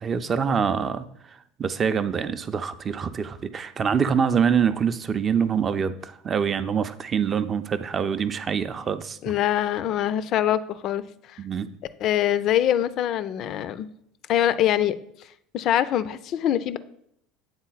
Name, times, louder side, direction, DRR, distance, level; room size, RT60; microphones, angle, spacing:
voice 1, 0.0-1.1 1.6-9.2 11.4-11.7, right 7 dB, 35° right, 11 dB, 0.4 m, -25 dB
voice 2, 9.2-11.0 11.3-11.4 12.0-13.9 14.3-15.0 15.5-16.8, left 11 dB, 50° left, 15 dB, 0.3 m, -23 dB
8.0 x 3.8 x 3.9 m, 0.73 s
figure-of-eight pair, 70°, 0 cm